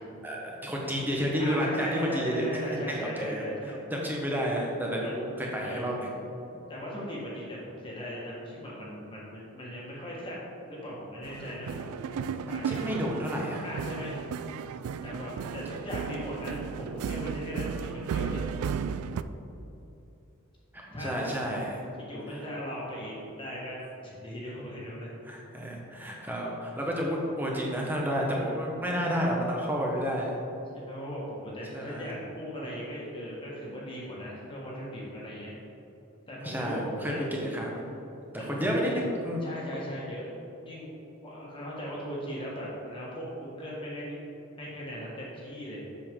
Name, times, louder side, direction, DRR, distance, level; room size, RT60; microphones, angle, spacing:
voice 1, 0.2-2.5 2.9-3.4 3.9-6.1 12.5-13.6 20.7-21.8 25.2-30.4 31.7-32.1 36.4-37.9 38.3-39.4, equal, 10° right, -2 dB, 1.0 m, -30 dB
voice 2, 1.4-3.8 5.0-5.1 5.6-5.9 6.7-11.9 12.1-13.0 13.6-14.2 15.0-18.5 20.9-21.1 22.0-25.1 30.7-35.5 36.3-36.8 37.1-37.2 38.4-38.9 39.4-40.3 40.6-44.2 44.6-45.8, equal, 25° left, -6 dB, 1.5 m, -38 dB
sound 1, 11.2-19.2, right 6 dB, 85° right, 0.3 m, -34 dB
7.9 x 6.9 x 3.7 m, 3.0 s
head